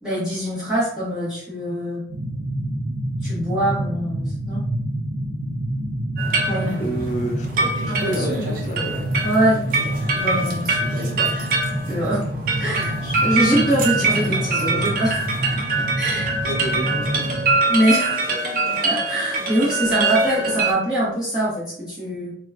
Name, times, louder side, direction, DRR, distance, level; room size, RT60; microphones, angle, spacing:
voice 1, 0.0-2.0 3.2-4.7 6.4-6.9 7.9-8.5 9.2-9.6 10.1-11.1 11.9-12.3 12.6-15.3 16.0-16.5 17.7-18.2 18.8-22.3, right 1 dB, 5° right, -11 dB, 1.1 m, -23 dB
sound 1, 2.1-17.5, right 1 dB, 75° right, 0.8 m, -28 dB
sound 2, 6.2-20.7, right 3 dB, 50° right, 0.6 m, -24 dB
voice 2, 6.8-9.0 16.4-17.4, right 1 dB, 40° left, 4 dB, 0.4 m, -29 dB
2.8 x 2.3 x 3.4 m, 0.66 s
head